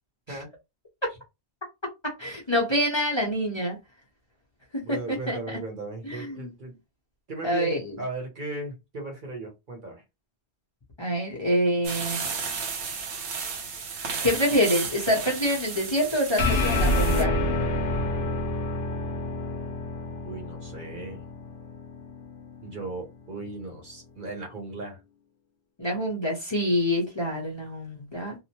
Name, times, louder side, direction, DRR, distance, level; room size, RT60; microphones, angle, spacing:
voice 1, 2.0-3.8 4.7-4.8 5.3-5.4 6.0-6.5 7.4-8.0 11.0-12.3 14.2-17.4 25.8-28.4, equal, 30° left, 0.7 m, -26 dB
voice 2, 4.8-6.7 7.3-10.0 20.2-21.2 22.6-25.0, right 3 dB, 50° right, 1.0 m, -37 dB
sound 1, 11.8-17.2, right 5 dB, 75° right, 1.0 m, -33 dB
sound 2, 16.4-23.1, left 2 dB, 65° left, 0.9 m, -28 dB
2.8 x 2.1 x 2.8 m
omnidirectional pair, 1.1 m